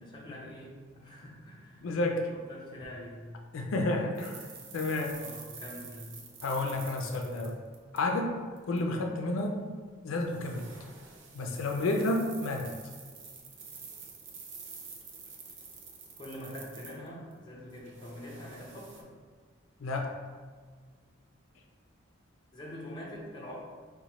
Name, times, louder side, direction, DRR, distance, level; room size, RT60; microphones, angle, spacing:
voice 1, 0.0-1.9 2.2-3.3 5.2-6.1 16.2-19.1 22.5-23.6, equal, 20° left, -4 dB, 0.6 m, -45 dB
voice 2, 1.8-2.3 3.5-4.5 4.7-5.1 6.4-7.6 7.9-8.3 8.7-9.5 10.0-10.7 11.3-12.7 19.8-20.1, left 2 dB, 85° left, 2 dB, 0.4 m, -30 dB
sound 1, 4.2-8.2 8.6-8.8 10.2-17.3 17.7-19.0, right 5 dB, 65° right, 0.5 m, -48 dB
2.9 x 2.2 x 4.1 m, 1.5 s
head